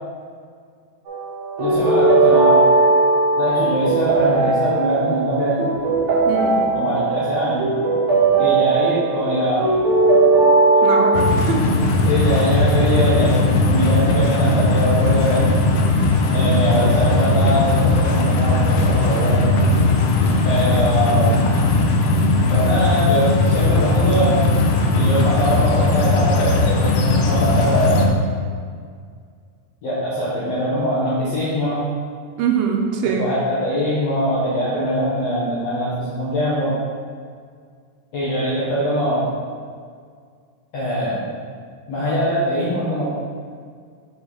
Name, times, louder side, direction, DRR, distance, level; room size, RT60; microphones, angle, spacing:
sound 1, 1.1-11.4, right 3 dB, 65° right, 2.3 m, -18 dB
voice 1, 1.6-2.6 3.4-5.6 6.7-7.7 8.4-9.7 12.0-15.4 16.3-19.6 20.4-21.4 22.5-24.4 24.9-28.1 29.8-31.8 33.2-36.8 38.1-39.3 40.7-41.3 41.9-43.0, equal, 70° left, -8 dB, 1.6 m, -22 dB
voice 2, 6.2-6.8 10.8-11.7 32.4-33.3, right 6 dB, 80° right, 2 dB, 2.4 m, -22 dB
sound 2, 11.1-28.1, left 2 dB, 90° left, 1.8 m, -18 dB
6.3 x 4.7 x 4.2 m, 2.1 s
omnidirectional pair, 4.3 m